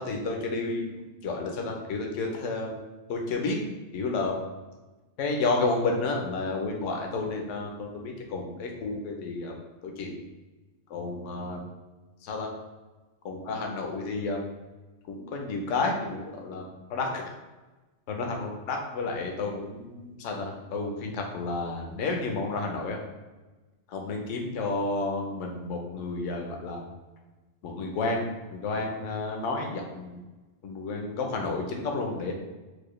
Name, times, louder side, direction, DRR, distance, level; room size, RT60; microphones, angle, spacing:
voice 1, 0.0-2.8 3.1-3.6 3.9-4.4 5.2-9.5 9.8-10.2 10.9-11.6 12.2-12.5 13.2-14.4 15.1-17.2 18.1-23.0 23.9-26.8 27.6-30.2 30.6-32.3, left 3 dB, 80° left, 1 dB, 1.0 m, -31 dB
4.7 x 2.2 x 3.1 m, 1.2 s
omnidirectional pair, 1.3 m